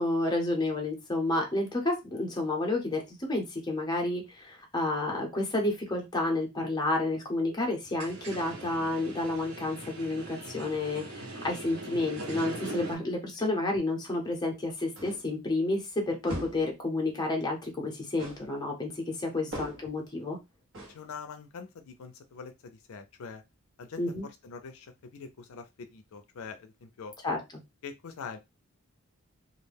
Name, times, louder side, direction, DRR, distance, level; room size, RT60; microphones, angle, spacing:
voice 1, 0.0-20.4 24.0-24.3 27.2-27.4, left 2 dB, 20° left, 1 dB, 0.7 m, -30 dB
sound 1, 7.8-12.9, right 2 dB, 80° right, 1.0 m, -41 dB
sound 2, 15.0-15.4 16.3-16.7 18.2-18.5 19.5-20.0 20.7-21.0, equal, 60° right, 1.1 m, -40 dB
voice 2, 19.3-19.6 20.9-23.4 23.8-27.2 27.8-28.4, left 5 dB, 75° left, 7 dB, 0.4 m, -44 dB
2.4 x 2.2 x 3.2 m, 0.22 s
head